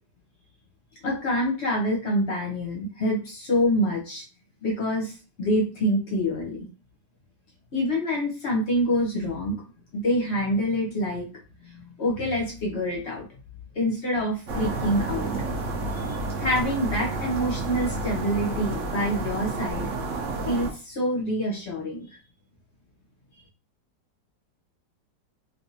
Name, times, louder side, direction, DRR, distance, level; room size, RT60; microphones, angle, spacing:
voice 1, 1.0-4.2 4.6-6.7 7.7-9.6 9.9-11.3 11.6-13.3 13.7-15.3 16.0-19.8 20.5-22.1, equal, 55° left, -1 dB, 0.8 m, -26 dB
sound 1, 14.5-20.7, right 2 dB, 60° right, 0.8 m, -30 dB
3.5 x 2.4 x 2.7 m, 0.34 s
omnidirectional pair, 2.0 m